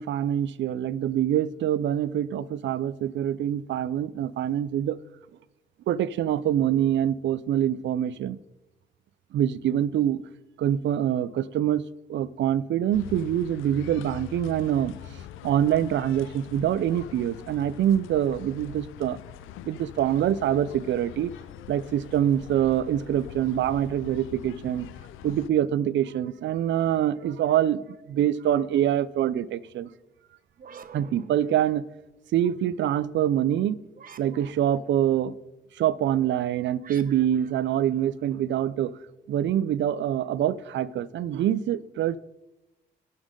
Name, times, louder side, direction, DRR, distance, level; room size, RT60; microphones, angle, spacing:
voice 1, 0.0-5.0 5.9-8.4 9.3-10.2 10.6-11.8 12.1-19.2 19.6-21.3 21.7-24.9 25.2-27.8 28.1-29.9 30.9-31.8 32.3-33.8 34.2-35.3 35.8-38.9 39.3-42.2, right 10 dB, 70° right, 0.6 m, -25 dB
sound 1, 12.9-25.5, left 11 dB, 90° left, 0.5 m, -43 dB
sound 2, 30.5-32.1 33.9-35.0 36.8-38.7, right 6 dB, 45° right, 0.9 m, -50 dB
19.5 x 6.6 x 3.8 m
cardioid pair, 90°, 20 cm